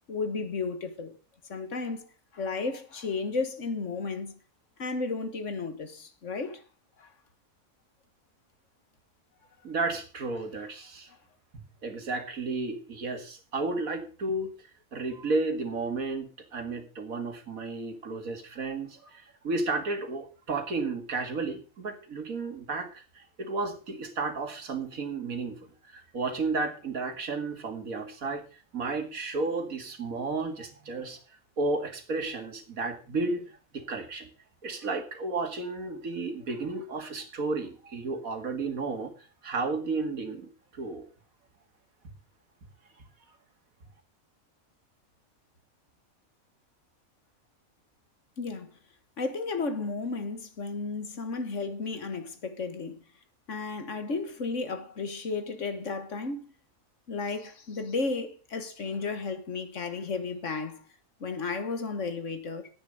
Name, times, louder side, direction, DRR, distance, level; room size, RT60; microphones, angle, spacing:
voice 1, 0.1-1.1 1.5-2.1 2.3-4.3 4.8-6.6 7.0-7.1 48.4-48.7 49.2-53.0 53.5-56.5 57.1-60.8 61.2-62.7, left 4 dB, 60° left, 1.7 m, -33 dB
voice 2, 9.6-11.1 11.5-14.5 14.9-28.4 28.7-31.2 31.6-34.3 34.6-39.1 39.4-41.1, right 3 dB, 75° right, 2.4 m, -33 dB
10.5 x 9.0 x 6.5 m
omnidirectional pair, 1.5 m